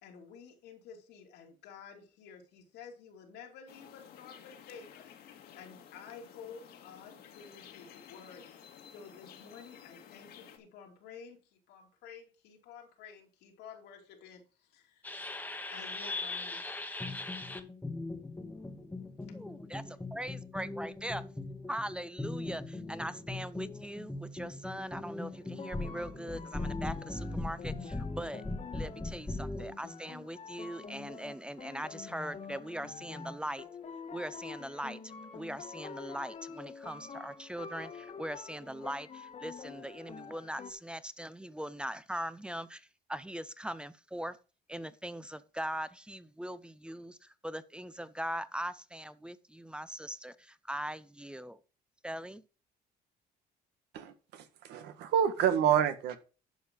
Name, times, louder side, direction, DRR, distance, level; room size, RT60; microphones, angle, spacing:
voice 1, 0.0-8.4 8.9-15.1 15.7-16.9, left 6 dB, 85° left, 2.8 m, -52 dB
sound 1, 3.7-10.6, left 8 dB, 70° left, 1.9 m, -53 dB
sound 2, 15.0-29.7, left 2 dB, 10° left, 1.3 m, -40 dB
voice 2, 19.3-21.2 21.7-28.4 28.7-33.7 34.1-44.4 44.7-51.6 52.0-52.4, right 1 dB, 5° right, 0.7 m, -41 dB
sound 3, 25.3-40.7, left 5 dB, 40° left, 1.6 m, -47 dB
voice 3, 53.9-56.2, right 9 dB, 80° right, 1.5 m, -28 dB
11.0 x 5.3 x 5.3 m
cardioid pair, 110°, 17 cm